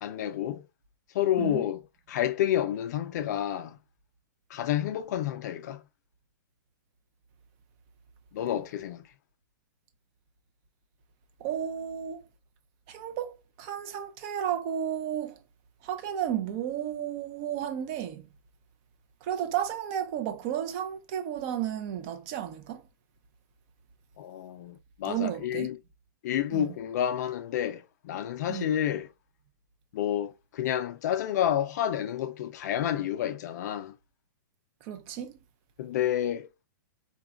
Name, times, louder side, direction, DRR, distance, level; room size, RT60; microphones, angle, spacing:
voice 1, 0.0-0.6 1.1-1.8 2.1-3.8 4.5-5.8 8.3-9.1 24.2-25.8 26.2-29.1 29.9-33.9 35.8-36.5, left 11 dB, 55° left, 0.4 m, -29 dB
voice 2, 11.4-12.2 12.9-15.4 15.8-18.2 19.2-22.8 25.0-25.7 26.5-26.8 28.5-28.7 34.8-35.4, right 10 dB, 35° right, 0.5 m, -33 dB
4.0 x 2.3 x 2.3 m
hypercardioid pair, 145°, 11 cm